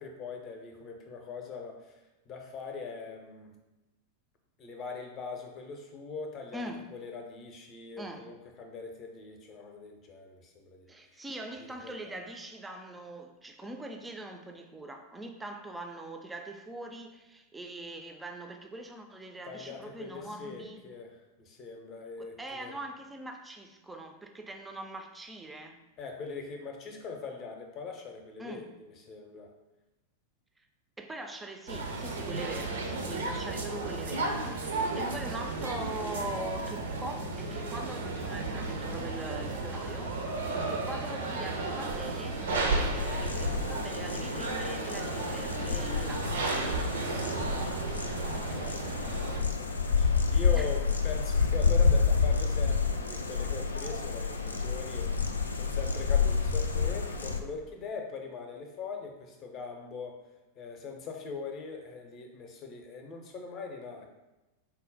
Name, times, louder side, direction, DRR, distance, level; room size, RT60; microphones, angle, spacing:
voice 1, 0.0-3.5 4.6-11.2 11.6-12.2 19.4-22.8 26.0-29.5 48.2-60.2 60.6-64.1, left 4 dB, 35° left, 3 dB, 0.6 m, -42 dB
voice 2, 6.5-6.9 8.0-8.3 10.9-20.8 22.2-25.8 28.4-28.6 31.0-46.7 50.5-50.7, right 1 dB, 10° right, 4 dB, 0.4 m, -42 dB
sound 1, 31.7-49.4, right 3 dB, 65° right, 0.5 m, -33 dB
sound 2, 43.0-57.4, left 5 dB, 75° left, 0.3 m, -29 dB
4.2 x 2.1 x 3.8 m, 1.0 s
figure-of-eight pair, 90°, 0 cm